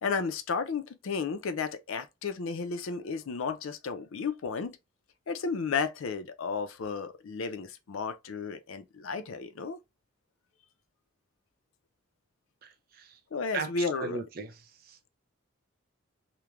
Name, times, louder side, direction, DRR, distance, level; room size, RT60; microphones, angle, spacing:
voice 1, 0.0-4.8 5.3-9.8 13.3-14.2, left 5 dB, 80° left, 0.5 m, -33 dB
voice 2, 12.6-13.2 13.5-13.7 14.0-15.0, right 4 dB, 45° right, 0.4 m, -38 dB
3.0 x 2.1 x 2.3 m
head